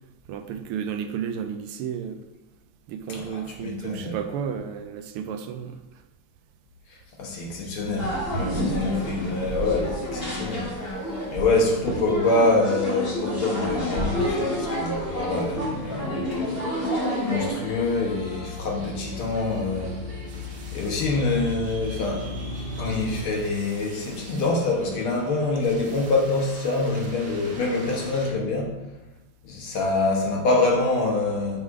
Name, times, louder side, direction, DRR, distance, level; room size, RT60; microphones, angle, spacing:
voice 1, 0.3-2.2 2.9-5.8, right 7 dB, 80° right, 1.5 m, -32 dB
voice 2, 3.1-4.6 6.9-10.7 11.3-16.7 17.3-20.0 20.7-22.3 22.8-28.7 29.4-31.6, left 2 dB, 75° left, 2.0 m, -26 dB
sound 1, 8.0-17.5, left 1 dB, 25° left, 1.9 m, -29 dB
sound 2, 15.4-16.8 17.0-23.2, left 3 dB, 10° left, 1.7 m, -37 dB
sound 3, 16.5-28.3, right 2 dB, 50° right, 1.4 m, -44 dB
7.1 x 4.0 x 4.8 m
omnidirectional pair, 2.4 m